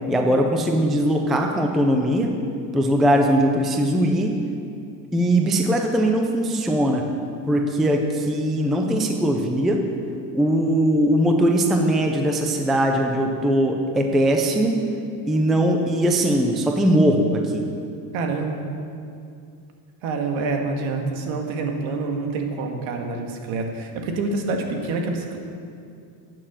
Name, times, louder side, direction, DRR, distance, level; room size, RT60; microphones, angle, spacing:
voice 1, 0.1-2.3 2.7-4.4 5.1-7.0 7.5-9.8 10.3-14.8 15.3-17.7, right 1 dB, ahead, 3 dB, 0.3 m, -20 dB
voice 2, 18.1-18.6 20.0-25.4, right 3 dB, 70° right, 2 dB, 2.0 m, -27 dB
11.0 x 9.1 x 7.4 m, 2.4 s
cardioid pair, 165°, 47 cm